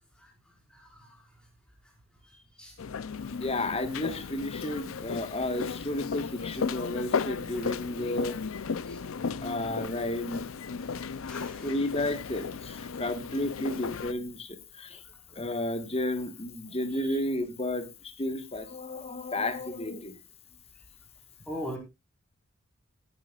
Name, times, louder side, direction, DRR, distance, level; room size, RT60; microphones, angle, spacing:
voice 1, 0.7-1.1 2.6-2.7 8.9-9.0 10.9-11.7 16.9-17.2 21.5-21.8, equal, 5° left, 0 dB, 5.0 m, -40 dB
sound 1, 2.8-14.1, left 5 dB, 70° left, 0.5 m, -35 dB
voice 2, 3.4-8.4 9.4-10.5 11.6-15.0 15.3-17.9 18.2-20.1, left 1 dB, 30° left, 9 dB, 1.4 m, -32 dB
16.5 x 10.5 x 2.4 m, 0.24 s
head